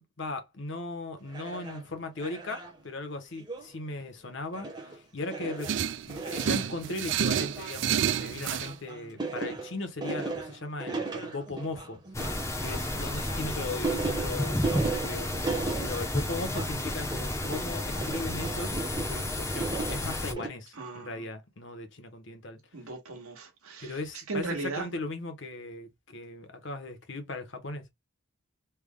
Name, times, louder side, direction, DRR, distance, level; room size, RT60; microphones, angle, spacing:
voice 1, 0.0-5.7 6.0-12.0 12.6-15.3 15.8-22.6 23.8-27.8, left 2 dB, 60° left, 0.9 m, -38 dB
sound 1, 1.3-1.8 2.2-2.8 3.4-3.7 4.0-4.1 4.5-5.0 5.2-19.2 19.5-20.5, right 3 dB, 20° right, 0.9 m, -36 dB
sound 2, 5.6-8.7, right 8 dB, 60° right, 0.3 m, -29 dB
sound 3, 12.1-20.3, left 1 dB, 15° left, 0.6 m, -32 dB
voice 2, 20.8-21.2 22.7-24.0 24.3-24.8, right 3 dB, 90° right, 1.2 m, -36 dB
3.4 x 2.2 x 3.5 m
head